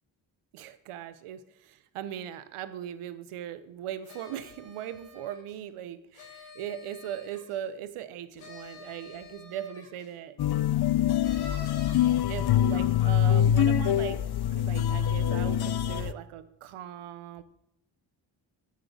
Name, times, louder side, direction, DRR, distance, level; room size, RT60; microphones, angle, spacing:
voice 1, 0.5-10.3 12.3-14.2 14.5-17.4, right 10 dB, 80° right, 13 dB, 0.9 m, -39 dB
sound 1, 4.0-5.6 6.1-7.6 8.4-10.1 11.2-12.2, left 4 dB, 80° left, 2.9 m, -48 dB
sound 2, 10.4-16.1, left 10 dB, 50° left, 0.6 m, -24 dB
7.5 x 6.2 x 7.1 m, 0.80 s
supercardioid pair, 50°, 50 cm